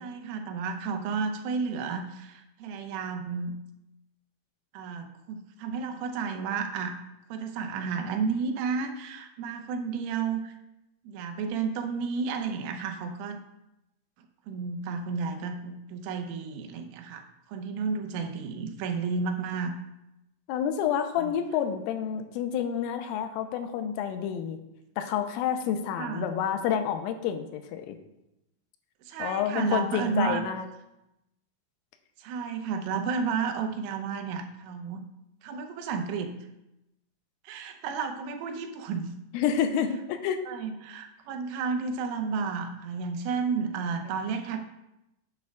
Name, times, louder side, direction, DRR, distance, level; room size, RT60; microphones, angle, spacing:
voice 1, 0.0-3.5 4.7-7.0 7.3-10.5 11.0-13.4 14.5-19.7 21.2-21.3 26.0-26.3 29.0-30.5 32.2-35.0 35.4-36.3 37.4-39.1 40.5-44.6, right 5 dB, 85° right, 5 dB, 3.4 m, -32 dB
voice 2, 20.5-24.6 25.0-28.0 29.2-30.7 39.3-40.4, left 8 dB, 90° left, 7 dB, 3.3 m, -29 dB
9.4 x 9.1 x 2.3 m, 0.90 s
omnidirectional pair, 5.7 m